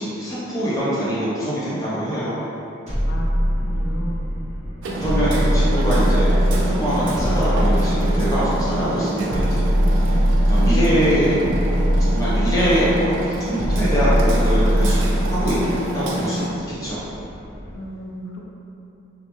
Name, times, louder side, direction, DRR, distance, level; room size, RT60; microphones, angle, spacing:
voice 1, 0.0-2.4 4.9-11.4 12.0-15.0 15.3-15.7 15.9-16.4 16.8-17.0, equal, 15° left, -10 dB, 0.6 m, -23 dB
sound 1, 2.9-4.2 5.0-6.6 7.1-8.6 9.3-10.9 11.4-12.8 13.6-15.2, equal, 35° right, 1.1 m, -20 dB
sound 2, 3.1-17.8, equal, 50° left, 0.8 m, -40 dB
voice 2, 3.6-4.3 17.7-18.4, equal, 70° left, -2 dB, 0.4 m, -33 dB
Hammer, 4.8-16.5, right 1 dB, 65° right, 0.3 m, -28 dB
3.1 x 2.0 x 3.0 m, 2.8 s
head